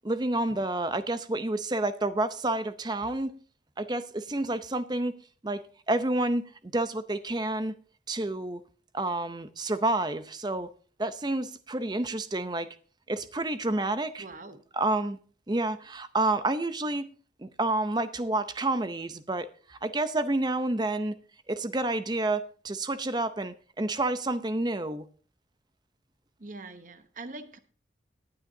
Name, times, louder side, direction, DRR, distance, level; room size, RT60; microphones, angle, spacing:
voice 1, 0.0-3.4 3.8-5.1 5.4-7.7 8.1-8.6 8.9-10.7 11.0-12.7 13.1-14.2 14.7-15.2 15.5-17.1 17.4-21.2 21.5-25.0, right 2 dB, 25° right, 0.6 m, -29 dB
voice 2, 14.2-14.6 26.4-27.6, right 2 dB, 45° right, 0.9 m, -43 dB
19.0 x 8.7 x 2.7 m
head